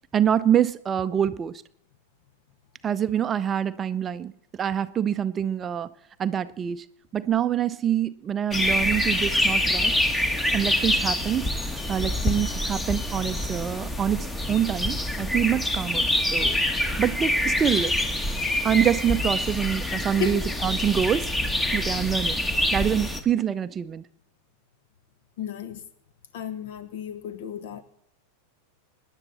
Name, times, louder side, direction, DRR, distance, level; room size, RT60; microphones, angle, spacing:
voice 1, 0.1-1.6 2.8-4.3 4.6-5.9 6.2-6.8 7.1-10.0 10.5-11.5 11.9-16.6 17.0-17.9 18.6-21.3 21.7-22.4 22.7-24.0, right 9 dB, 25° right, 0.6 m, -25 dB
sound 1, 8.5-23.2, left 1 dB, 10° left, 1.5 m, -26 dB
voice 2, 25.4-25.8 26.3-27.8, left 8 dB, 55° left, 1.4 m, -33 dB
25.5 x 10.5 x 4.2 m
figure-of-eight pair, 90°, 0 cm